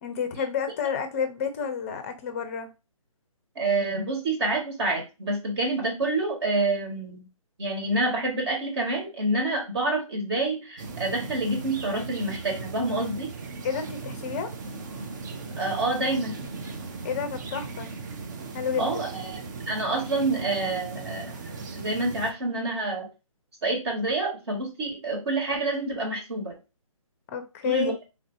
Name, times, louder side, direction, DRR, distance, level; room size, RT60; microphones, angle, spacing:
voice 1, 0.0-2.7 13.6-14.5 17.0-17.9 18.5-19.0 27.3-27.9, left 6 dB, 25° left, 0.5 m, -30 dB
voice 2, 3.5-7.2 7.6-13.3 15.6-16.4 18.8-19.4 19.7-21.3 21.7-23.1 23.6-26.5 27.6-27.9, right 2 dB, 50° right, 1.6 m, -27 dB
sound 1, 10.8-22.3, right 4 dB, 35° right, 0.5 m, -37 dB
3.4 x 2.7 x 2.6 m
figure-of-eight pair, 150°, 18 cm